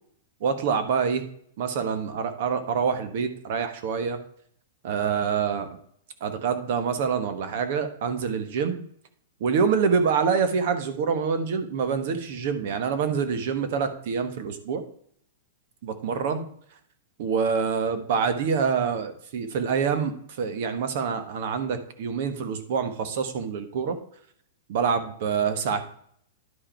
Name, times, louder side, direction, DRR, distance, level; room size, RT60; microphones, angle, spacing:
voice 1, 0.4-1.3 1.6-4.2 4.8-5.7 6.2-8.8 9.4-14.8 15.8-16.5 17.2-24.0 24.7-25.8, right 6 dB, 55° right, 10 dB, 1.3 m, -26 dB
11.0 x 4.8 x 4.5 m, 0.62 s
supercardioid pair, 160°, 0 cm